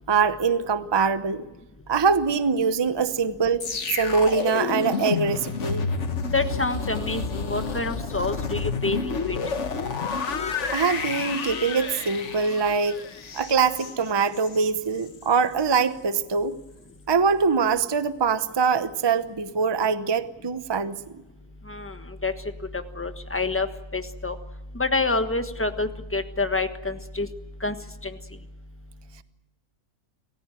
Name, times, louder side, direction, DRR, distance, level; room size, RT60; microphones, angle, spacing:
voice 1, 0.1-1.4 1.9-5.9 10.7-13.0 13.3-16.5 17.1-21.0, right 5 dB, 20° right, 12 dB, 0.7 m, -23 dB
sound 1, 3.6-14.7 15.0-15.3, left 4 dB, 50° left, 1.6 m, -30 dB
voice 2, 6.3-9.4 21.7-22.0 22.2-22.3 22.7-23.7 23.9-24.4 24.7-27.3 27.6-27.7 28.0-28.2, left 3 dB, 10° left, 8 dB, 1.3 m, -27 dB
28.0 x 15.0 x 9.1 m, 1.0 s
omnidirectional pair, 1.6 m